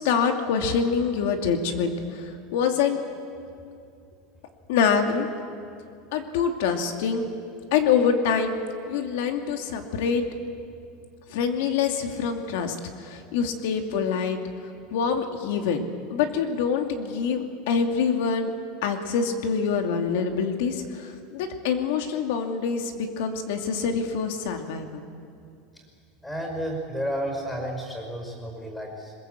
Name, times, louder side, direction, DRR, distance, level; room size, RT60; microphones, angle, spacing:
voice 1, 0.0-3.0 4.7-5.3 6.1-7.3 7.7-8.6 8.9-10.2 11.3-14.4 14.9-15.8 16.1-18.5 18.8-25.0, left 6 dB, 70° left, 4 dB, 2.5 m, -25 dB
voice 2, 26.2-29.1, equal, 5° left, 2 dB, 5.4 m, -32 dB
22.0 x 21.5 x 8.1 m, 2.4 s
supercardioid pair, 165°, 0 cm